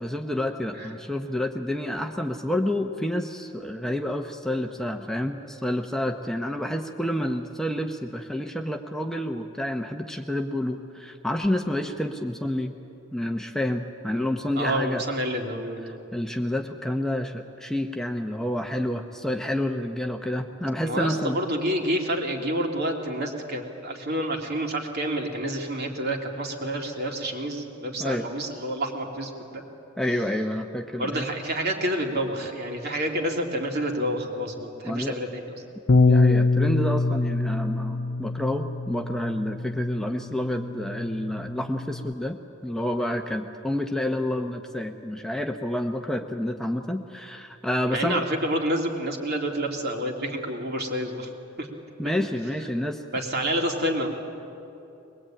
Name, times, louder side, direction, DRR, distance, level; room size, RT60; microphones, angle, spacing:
voice 1, 0.0-12.7 13.1-15.0 15.9-21.4 28.0-28.3 30.0-31.3 34.8-35.2 36.0-48.2 52.0-53.0, left 1 dB, 5° left, 3 dB, 0.8 m, -29 dB
voice 2, 14.6-16.0 20.8-29.6 30.9-35.6 47.9-51.3 51.6-51.7 52.0-52.1 53.1-54.1, right 1 dB, 55° right, 1 dB, 2.8 m, -28 dB
Bass guitar, 35.9-42.1, left 3 dB, 55° left, 0.6 m, -24 dB
22.5 x 21.5 x 8.9 m, 2.8 s
head